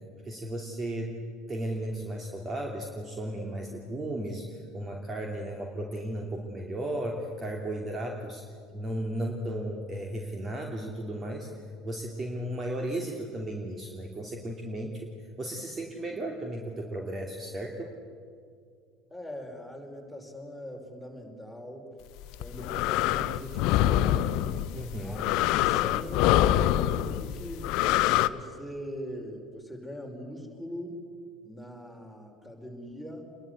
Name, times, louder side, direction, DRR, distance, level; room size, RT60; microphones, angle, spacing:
voice 1, 0.2-1.1 1.5-8.4 8.7-11.5 11.8-15.1 15.4-17.9 24.7-25.2, right 1 dB, 25° right, 2 dB, 2.7 m, -35 dB
voice 2, 19.1-21.9 22.4-24.6 25.0-25.3 25.6-27.7 28.2-31.0 31.4-33.3, equal, ahead, 3 dB, 5.3 m, -41 dB
sound 1, 22.2-28.3, left 13 dB, 55° left, 0.7 m, -25 dB
27.5 x 21.5 x 8.1 m, 2.3 s
figure-of-eight pair, 65°, 0 cm